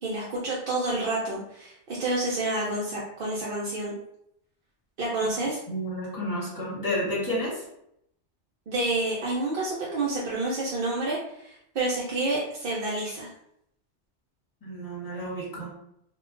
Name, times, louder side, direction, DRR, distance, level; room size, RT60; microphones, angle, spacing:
voice 1, 0.0-3.9 5.0-5.6 8.7-13.3, right 2 dB, 55° right, -6 dB, 0.7 m, -29 dB
voice 2, 5.7-7.6 14.6-15.7, equal, 20° left, -6 dB, 1.0 m, -31 dB
2.3 x 2.1 x 3.7 m, 0.75 s
omnidirectional pair, 1.2 m